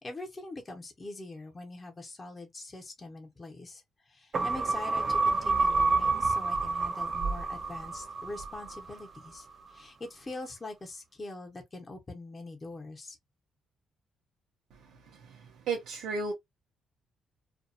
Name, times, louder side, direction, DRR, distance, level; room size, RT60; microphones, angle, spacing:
voice 1, 0.0-13.2, left 2 dB, 25° left, 0.9 m, -43 dB
sound 1, 4.3-9.0 9.4-9.5, right 3 dB, 40° right, 0.5 m, -28 dB
voice 2, 15.1-16.3, right 4 dB, 80° right, 0.7 m, -34 dB
2.5 x 2.3 x 2.6 m
cardioid pair, 105°, 0 cm